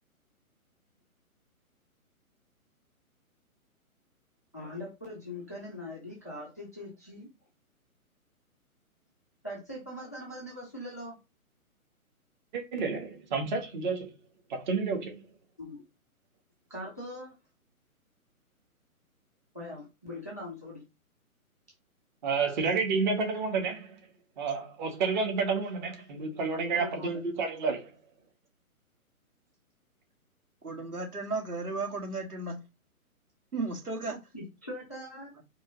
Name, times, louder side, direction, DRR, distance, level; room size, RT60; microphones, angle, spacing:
voice 1, 4.5-7.3 9.4-11.2 15.6-15.8 16.7-17.3 19.5-20.8 26.7-27.2 34.3-35.3, left 1 dB, 15° left, 0.4 m, -41 dB
voice 2, 12.5-14.1 14.5-15.2 22.2-23.9 24.4-27.9, right 4 dB, 30° right, 1.2 m, -30 dB
voice 3, 30.6-32.6 33.5-34.2, right 3 dB, 85° right, 1.9 m, -34 dB
4.6 x 2.9 x 3.5 m
figure-of-eight pair, 130°, 44 cm